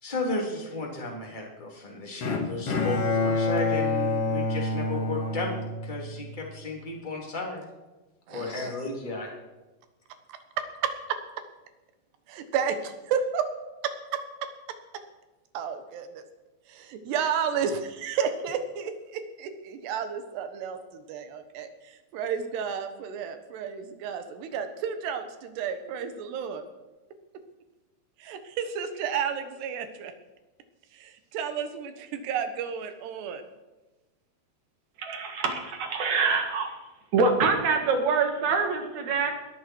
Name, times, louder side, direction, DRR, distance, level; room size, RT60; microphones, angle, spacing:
voice 1, 0.0-5.5 5.8-7.6 8.3-9.3, left 2 dB, 10° left, -1 dB, 2.5 m, -33 dB
Bowed string instrument, 2.2-6.4, left 3 dB, 45° left, 2.0 m, -27 dB
voice 2, 8.3-8.7 10.3-11.2 12.3-13.5 13.8-14.2 15.5-16.2 16.7-26.6 28.2-30.1 30.9-33.4 35.1-35.2, right 7 dB, 70° right, 8 dB, 3.2 m, -32 dB
voice 3, 35.0-36.7 37.1-39.3, right 4 dB, 50° right, 4 dB, 2.5 m, -25 dB
19.5 x 13.0 x 4.7 m, 1.1 s
omnidirectional pair, 5.3 m